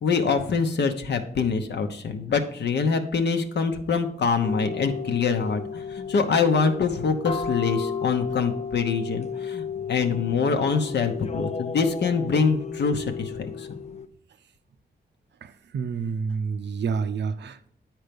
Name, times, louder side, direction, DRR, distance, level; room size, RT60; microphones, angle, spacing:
voice 1, 0.0-13.8, left 5 dB, 80° left, 6 dB, 0.8 m, -25 dB
sound 1, 4.4-14.1, left 6 dB, 40° left, 0.5 m, -33 dB
voice 2, 15.4-17.7, right 5 dB, 90° right, 11 dB, 0.6 m, -29 dB
9.4 x 4.5 x 5.2 m, 0.67 s
wide cardioid pair, 105°, 18 cm